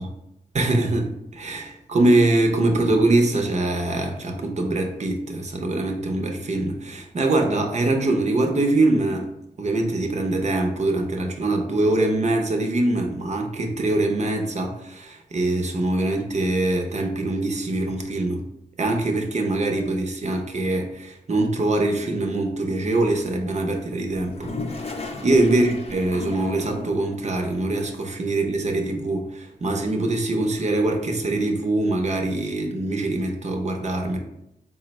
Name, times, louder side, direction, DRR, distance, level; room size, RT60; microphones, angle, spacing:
voice 1, 0.5-9.3 9.6-18.4 18.8-24.9 25.2-34.2, right 2 dB, 45° right, 2 dB, 0.7 m, -23 dB
Toilet flush, 24.1-27.2, left 3 dB, 40° left, 0.5 m, -34 dB
3.8 x 2.1 x 4.0 m, 0.83 s
cardioid pair, 65°, 17 cm